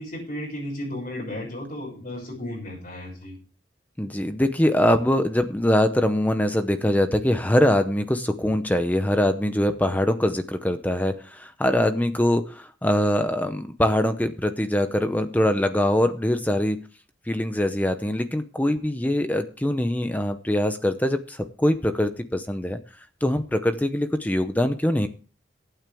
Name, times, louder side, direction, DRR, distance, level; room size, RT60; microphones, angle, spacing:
voice 1, 0.0-3.4, left 1 dB, 45° left, -4 dB, 6.4 m, -34 dB
voice 2, 4.0-16.8 17.3-22.8 23.2-25.1, left 1 dB, 10° left, 8 dB, 0.7 m, -23 dB
22.5 x 9.1 x 3.5 m, 0.38 s
head